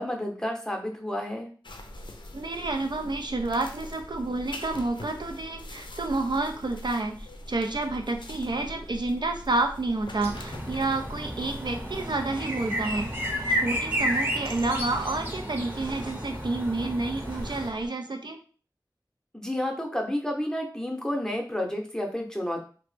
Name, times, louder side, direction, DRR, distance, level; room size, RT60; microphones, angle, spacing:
voice 1, 0.0-1.5 19.3-22.6, left 1 dB, 10° left, 1 dB, 0.7 m, -30 dB
sound 1, 1.6-12.1, left 1 dB, 85° left, 0.4 m, -43 dB
voice 2, 2.3-13.1 13.5-18.4, right 2 dB, 70° right, 4 dB, 0.4 m, -29 dB
sound 2, 10.2-17.7, equal, 30° right, 0.8 m, -32 dB
sound 3, 11.9-17.9, equal, 85° right, 0.8 m, -46 dB
3.1 x 2.0 x 3.2 m, 0.40 s
wide cardioid pair, 45°, 8 cm